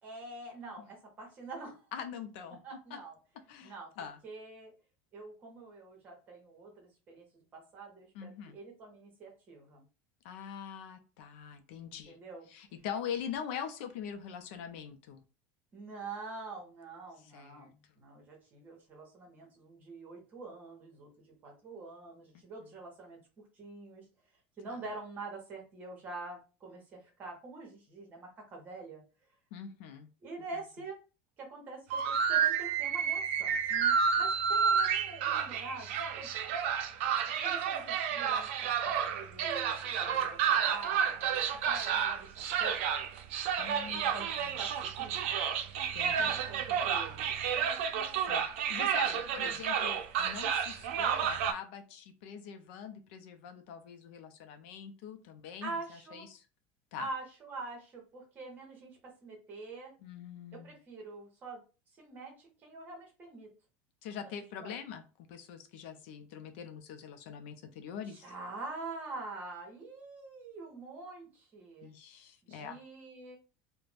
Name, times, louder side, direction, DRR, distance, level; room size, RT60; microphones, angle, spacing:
voice 1, 0.0-1.9 2.6-3.1 3.6-3.9 4.2-4.7 5.1-9.8 11.9-12.5 15.7-24.0 24.6-29.0 30.2-31.0 31.4-36.3 37.4-42.8 43.8-44.3 44.6-45.1 46.2-47.3 49.4-49.6 55.6-56.3 57.0-59.9 60.5-61.6 62.0-63.5 64.2-64.3 64.6-64.7 68.0-71.9 72.4-73.4, right 3 dB, 25° right, 1 dB, 1.0 m, -45 dB
voice 2, 1.9-2.6 2.9-3.0 3.5-4.2 8.1-8.6 10.2-12.2 12.5-15.2 17.2-17.7 22.6-22.7 24.7-24.8 29.5-30.1 43.6-44.6 45.9-46.4 48.3-56.4 56.9-57.1 60.0-60.8 64.0-65.0 65.3-68.3 71.8-72.8, left 8 dB, 70° left, 7 dB, 0.5 m, -43 dB
sound 1, 31.9-51.5, right 7 dB, 90° right, 0.5 m, -31 dB
2.5 x 2.1 x 3.2 m, 0.33 s
cardioid pair, 170°, 7 cm